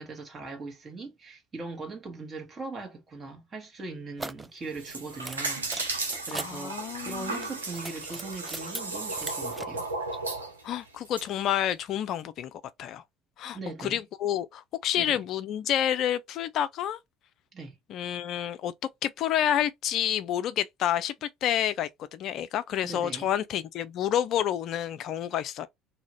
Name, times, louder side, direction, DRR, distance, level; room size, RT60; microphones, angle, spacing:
voice 1, 0.0-9.9 13.5-14.0 14.9-15.2 17.5-17.7 22.8-23.3, right 3 dB, 30° right, 1.5 m, -40 dB
sound 1, 4.2-4.5 5.2-6.5 7.3-8.8 9.1-9.6, right 2 dB, 15° right, 0.4 m, -39 dB
sound 2, 4.6-11.2, right 3 dB, 90° right, 0.7 m, -35 dB
voice 2, 6.3-7.5 10.6-13.0 13.4-17.0 17.9-18.7 19.0-25.7, left 10 dB, 55° left, 0.3 m, -29 dB
2.8 x 2.5 x 3.1 m
figure-of-eight pair, 60°, 0 cm